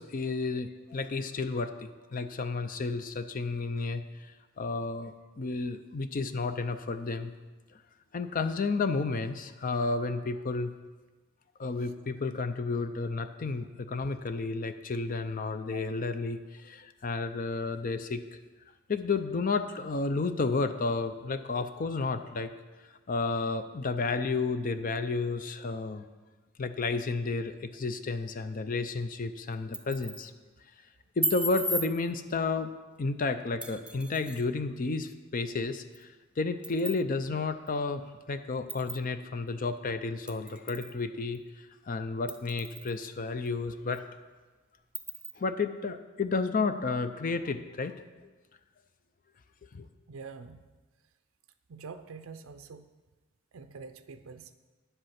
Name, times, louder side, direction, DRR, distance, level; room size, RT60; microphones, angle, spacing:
voice 1, 0.0-7.3 8.1-10.7 11.6-18.4 18.9-22.5 23.1-26.1 26.6-30.3 31.2-32.7 33.0-44.0 45.4-48.0 49.7-49.8, left 3 dB, 40° left, 10 dB, 0.5 m, -32 dB
sound 1, 29.5-30.3 31.2-31.9 33.6-34.4 35.9-36.0 36.6-37.0 37.7-37.8 38.7-39.0 40.3-40.9 41.3-41.4 42.3-43.0 43.5-43.6 43.9-44.0 44.9-45.3, right 1 dB, 5° right, 0.6 m, -35 dB
voice 2, 50.1-50.7 51.7-52.9 53.5-54.6, right 5 dB, 85° right, 9 dB, 0.5 m, -45 dB
9.8 x 8.0 x 5.8 m, 1.3 s
head